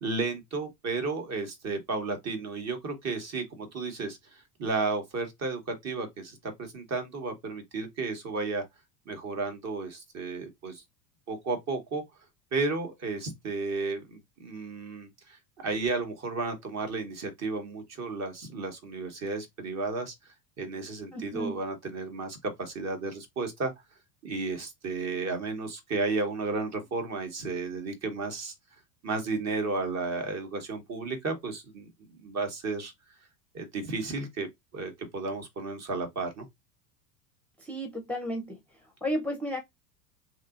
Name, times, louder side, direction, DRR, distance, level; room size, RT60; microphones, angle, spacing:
voice 1, 0.0-8.6 9.1-10.8 11.3-12.0 12.5-20.1 20.6-23.7 24.2-28.5 29.0-31.9 32.2-32.9 33.5-34.5 34.7-36.5, right 3 dB, 30° right, 1.2 m, -33 dB
voice 2, 21.1-21.6 37.6-38.6 39.0-39.6, equal, 5° left, 0.7 m, -33 dB
3.1 x 2.9 x 2.5 m
hypercardioid pair, 85°, 49 cm